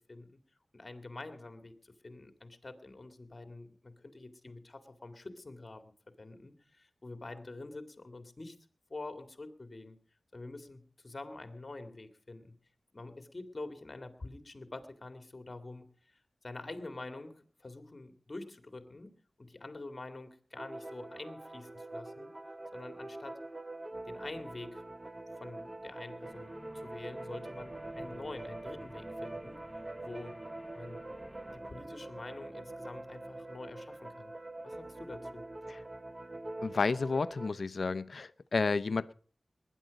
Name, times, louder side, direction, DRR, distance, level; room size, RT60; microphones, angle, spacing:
voice 1, 0.1-0.4 0.7-5.9 6.2-8.6 8.9-10.0 10.3-12.5 12.9-19.1 19.4-22.3 22.7-23.4 24.1-24.9 25.4-29.6 30.0-30.4 30.7-31.1 31.5-34.3 34.6-35.5, left 2 dB, 45° left, 2.2 m, -46 dB
sound 1, 20.6-37.5, right 2 dB, 30° right, 0.8 m, -45 dB
sound 2, 26.2-31.6, equal, 5° right, 1.3 m, -52 dB
voice 2, 36.6-39.1, left 4 dB, 70° left, 0.6 m, -31 dB
20.5 x 10.0 x 5.2 m
cardioid pair, 55°, 0 cm